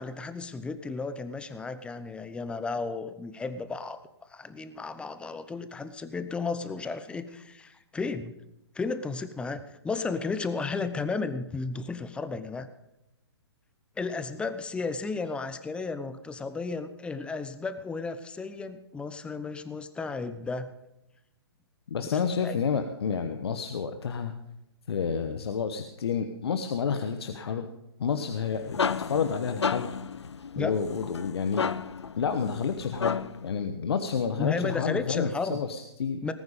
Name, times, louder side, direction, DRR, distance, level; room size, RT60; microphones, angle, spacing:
voice 1, 0.0-4.0 4.3-8.3 8.7-12.7 14.0-20.7 22.1-22.6 30.6-30.8 34.4-35.6 36.2-36.3, left 4 dB, 5° left, 11 dB, 0.8 m, -33 dB
voice 2, 21.9-24.3 24.9-27.7 28.0-29.9 30.5-31.7 32.2-36.2, left 6 dB, 65° left, 7 dB, 1.2 m, -30 dB
sound 1, 28.3-33.5, left 6 dB, 85° left, 0.7 m, -32 dB
19.0 x 9.4 x 5.3 m, 0.88 s
hypercardioid pair, 130°, 14 cm